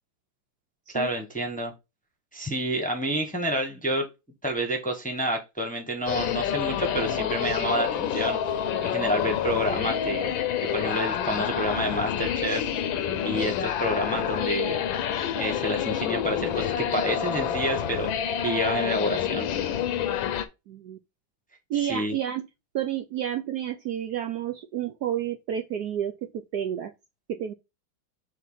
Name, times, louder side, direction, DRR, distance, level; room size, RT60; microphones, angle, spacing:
voice 1, 0.9-1.7 2.3-4.1 4.4-8.4 8.8-10.3 10.7-12.6 13.2-14.8 15.4-18.1 18.4-19.5 21.9-22.1, right 1 dB, 5° left, 1.0 m, -29 dB
sound 1, 6.1-20.4, left 9 dB, 75° left, 1.5 m, -28 dB
voice 2, 20.7-21.0 21.7-22.5 22.7-26.9 27.3-27.5, right 10 dB, 65° right, 1.0 m, -30 dB
7.3 x 2.9 x 5.6 m
omnidirectional pair, 2.2 m